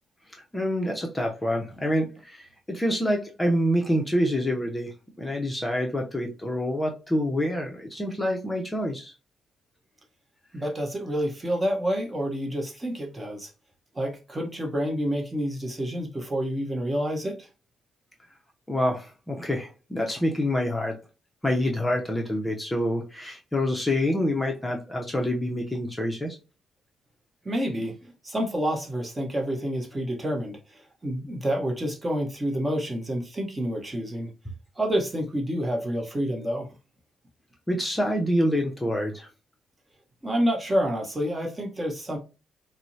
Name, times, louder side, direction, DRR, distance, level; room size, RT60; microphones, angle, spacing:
voice 1, 0.5-4.9 5.2-9.1 18.7-20.9 21.4-26.4 37.7-39.3, equal, 15° left, 0.6 m, -27 dB
voice 2, 10.5-13.5 14.0-17.5 27.4-28.0 28.2-30.6 31.0-34.3 34.8-36.7 40.2-42.2, equal, 20° right, 0.9 m, -28 dB
4.2 x 2.0 x 2.6 m
cardioid pair, 90°, 0 cm